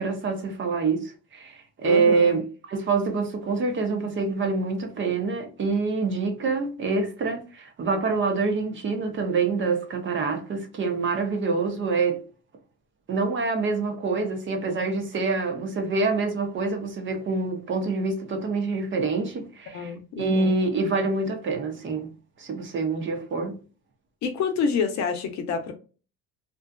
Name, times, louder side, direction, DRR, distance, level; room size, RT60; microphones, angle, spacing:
voice 1, 0.0-12.2 13.1-22.1 22.4-23.6, right 4 dB, 35° right, 0.6 m, -26 dB
voice 2, 1.8-2.4 19.7-20.6 24.2-25.7, left 5 dB, 55° left, 0.6 m, -28 dB
2.6 x 2.3 x 2.2 m
cardioid pair, 115°, 35 cm